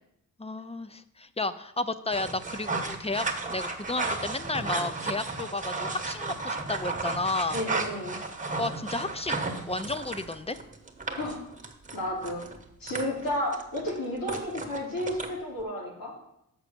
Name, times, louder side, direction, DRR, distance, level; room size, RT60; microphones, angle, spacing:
voice 1, 0.4-7.6 8.6-10.6, left 2 dB, 20° left, 12 dB, 0.5 m, -32 dB
sound 1, 2.1-15.6, right 3 dB, 25° right, 1.1 m, -34 dB
voice 2, 7.5-8.2 11.2-11.4 11.9-12.4 12.8-16.1, left 1 dB, 85° left, -3 dB, 3.0 m, -32 dB
6.2 x 6.1 x 6.8 m, 0.79 s
cardioid pair, 80°, 34 cm